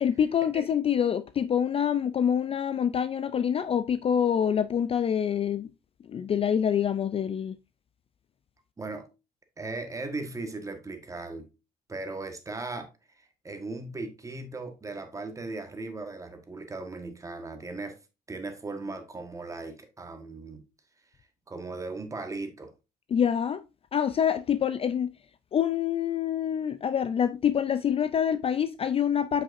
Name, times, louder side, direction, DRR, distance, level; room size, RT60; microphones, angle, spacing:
voice 1, 0.0-5.7 6.0-7.6 23.1-23.6 23.9-25.1 25.5-29.4, left 8 dB, 35° left, 0.4 m, -26 dB
voice 2, 9.6-11.5 11.9-12.9 13.2-18.0 18.3-20.6 21.5-22.7, right 3 dB, 20° right, 1.5 m, -37 dB
7.4 x 5.8 x 2.6 m
cardioid pair, 110°, 17 cm